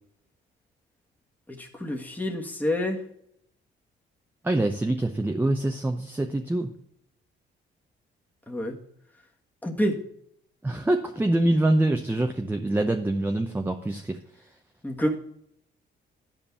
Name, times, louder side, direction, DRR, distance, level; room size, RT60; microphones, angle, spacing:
voice 1, 1.5-3.0 8.5-8.8 9.6-10.0 14.8-15.2, equal, 10° left, 1 dB, 1.6 m, -28 dB
voice 2, 4.4-6.7 10.6-14.5, right 1 dB, 10° right, 5 dB, 0.8 m, -25 dB
10.0 x 5.3 x 7.0 m, 0.72 s
cardioid pair, 90°, 20 cm